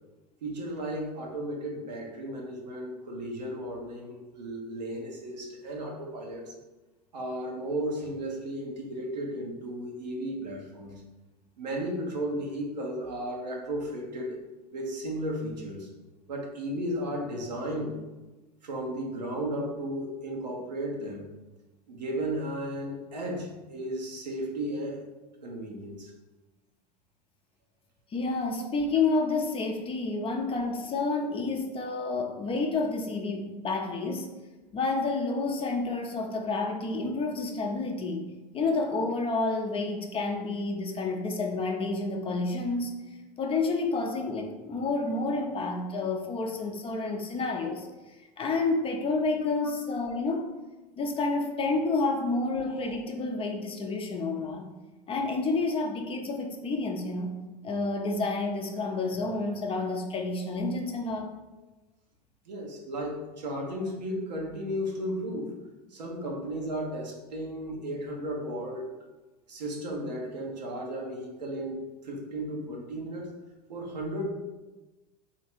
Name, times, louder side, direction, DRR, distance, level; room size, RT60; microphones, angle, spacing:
voice 1, 0.4-6.5 7.1-11.0 11.6-14.4 14.7-15.9 16.3-17.9 18.6-21.3 21.9-25.0 25.4-26.1 62.5-65.5 65.9-68.9 69.5-71.8 72.0-73.3 73.7-74.3, right 1 dB, 80° right, 0 dB, 0.9 m, -34 dB
voice 2, 28.1-34.3 34.7-38.2 38.5-43.0 43.4-47.9 48.4-50.5 51.0-54.7 55.1-57.3 57.6-61.3, left 3 dB, 25° left, 2 dB, 0.6 m, -29 dB
3.1 x 2.8 x 4.4 m, 1.1 s
hypercardioid pair, 80°, 21 cm